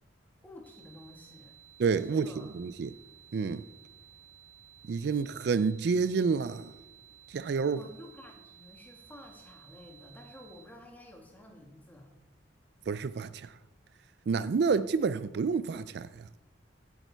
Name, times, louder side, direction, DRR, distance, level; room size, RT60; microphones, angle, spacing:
voice 1, 0.4-1.5 2.0-2.5 7.7-12.1, left 1 dB, 10° left, 1.6 m, -51 dB
sound 1, 0.6-10.6, right 11 dB, 25° right, 3.0 m, -56 dB
voice 2, 1.8-2.9 3.3-3.6 4.9-6.7 7.3-7.8 12.9-13.5 14.3-16.2, right 5 dB, 55° right, 0.3 m, -29 dB
16.0 x 8.3 x 4.5 m
head